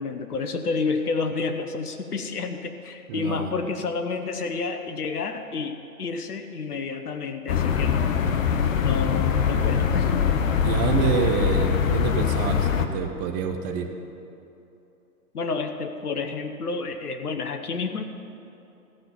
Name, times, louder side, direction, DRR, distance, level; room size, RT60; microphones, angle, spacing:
voice 1, 0.0-8.2 8.8-10.3 15.3-18.0, left 4 dB, 85° left, 7 dB, 1.1 m, -30 dB
voice 2, 3.1-3.5 10.6-13.9, right 6 dB, 15° right, 5 dB, 0.4 m, -27 dB
sound 1, 7.5-12.9, left 7 dB, 60° left, 1.0 m, -23 dB
15.0 x 5.8 x 7.0 m, 2.8 s
hypercardioid pair, 125°, 45 cm